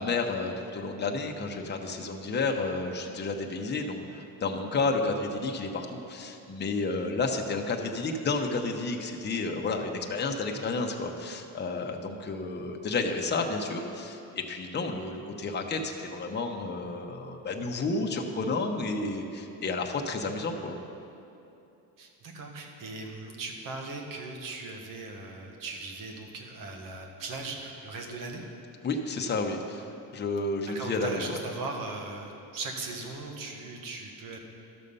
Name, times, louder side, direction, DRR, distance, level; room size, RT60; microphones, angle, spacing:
voice 1, 0.0-20.8 28.8-29.8 30.1-31.3, left 3 dB, 30° left, 2 dB, 0.9 m, -31 dB
voice 2, 22.0-28.4 30.6-34.4, right 3 dB, 65° right, 2 dB, 1.6 m, -39 dB
12.5 x 6.6 x 5.5 m, 2.8 s
cardioid pair, 110°, 36 cm